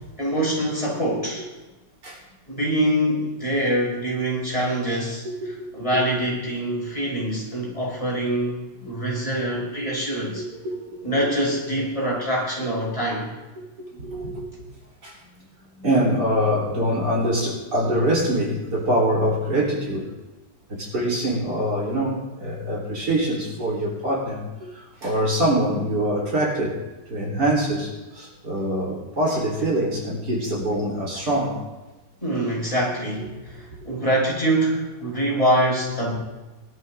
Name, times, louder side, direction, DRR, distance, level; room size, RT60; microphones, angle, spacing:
voice 1, 0.2-1.5 2.5-8.6 8.8-10.4 11.0-13.3 32.2-36.2, right 1 dB, 20° left, -5 dB, 5.8 m, -24 dB
voice 2, 5.2-5.9 10.1-11.1 13.9-14.4 15.0-15.2 15.8-20.1 20.7-26.8 27.1-31.6, right 1 dB, 65° right, -4 dB, 4.3 m, -24 dB
22.0 x 12.5 x 2.6 m, 1.1 s
omnidirectional pair, 1.9 m